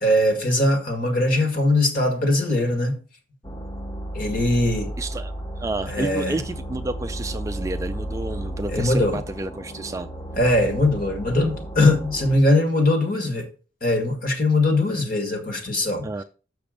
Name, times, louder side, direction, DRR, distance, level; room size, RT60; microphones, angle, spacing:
voice 1, 0.0-3.0 4.1-4.9 5.9-6.3 8.7-9.2 10.4-13.5 13.8-16.1, left 1 dB, 45° left, 2.0 m, -21 dB
sound 1, 3.4-12.4, right 1 dB, 20° left, 0.7 m, -33 dB
voice 2, 5.0-10.1 16.0-16.2, right 2 dB, 15° right, 0.3 m, -30 dB
7.0 x 5.9 x 5.1 m
head